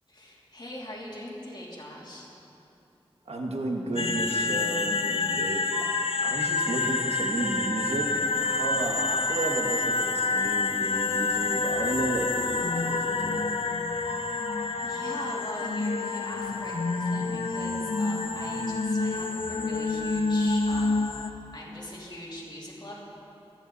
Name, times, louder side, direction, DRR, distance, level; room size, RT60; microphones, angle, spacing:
voice 1, 0.1-2.3 14.8-21.2 21.5-23.0, left 1 dB, 45° left, -5 dB, 3.4 m, -41 dB
voice 2, 3.3-5.9 6.2-8.1 8.4-13.4, right 1 dB, 90° right, 1 dB, 1.6 m, -33 dB
sound 1, 4.0-21.3, left 3 dB, 65° left, 0.7 m, -28 dB
sound 2, 5.3-13.6 14.1-15.8 16.0-18.7, right 1 dB, 15° right, 1.3 m, -43 dB
26.0 x 10.5 x 4.1 m, 2.9 s
wide cardioid pair, 55°, 10 cm